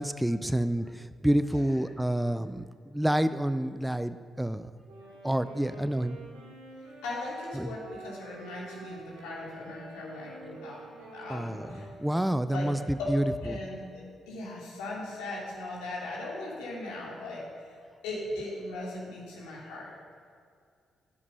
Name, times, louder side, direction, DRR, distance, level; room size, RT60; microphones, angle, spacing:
voice 1, 0.0-4.7 5.2-6.2 7.5-7.7 11.3-12.8 13.1-13.6, right 1 dB, 5° right, 12 dB, 0.5 m, -28 dB
Wind instrument woodwind instrument, 4.8-12.9, right 2 dB, 85° right, 2.4 m, -48 dB
voice 2, 7.0-11.9 12.4-12.7 13.0-13.1 13.4-17.8 18.0-19.9, left 2 dB, 80° left, -4 dB, 2.7 m, -39 dB
11.0 x 8.2 x 5.5 m, 2.2 s
hypercardioid pair, 40°, 0 cm